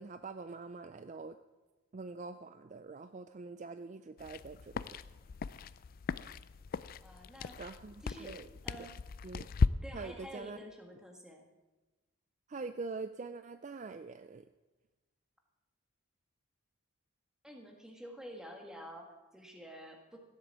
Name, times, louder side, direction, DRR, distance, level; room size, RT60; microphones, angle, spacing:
voice 1, 0.0-1.4 1.9-4.8 7.6-8.5 9.2-9.5 9.9-10.6 12.5-14.5, right 4 dB, 35° right, 10 dB, 0.4 m, -44 dB
sound 1, 4.2-9.7, left 5 dB, 40° left, 0.3 m, -37 dB
voice 2, 7.0-7.6 8.0-8.4 8.6-8.9 9.8-11.4 17.4-20.2, equal, 5° right, 2 dB, 1.7 m, -49 dB
15.5 x 8.1 x 7.6 m, 1.2 s
head